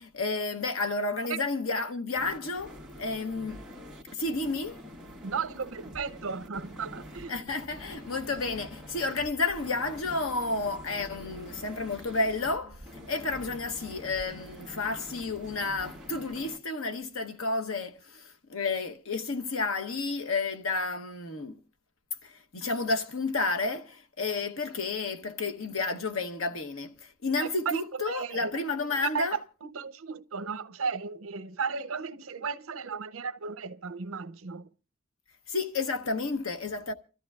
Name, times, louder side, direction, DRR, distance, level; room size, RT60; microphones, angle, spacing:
voice 1, 0.0-3.6 4.1-4.8 7.3-21.6 22.2-29.4 35.5-36.9, left 3 dB, 85° left, 1.0 m, -31 dB
sound 1, 2.2-16.6, equal, 5° right, 1.7 m, -46 dB
voice 2, 5.2-7.4 27.7-28.5 29.1-34.7, right 5 dB, 85° right, 0.6 m, -35 dB
Musical instrument, 7.5-14.3, right 1 dB, 30° left, 1.0 m, -55 dB
29.5 x 13.5 x 2.4 m
head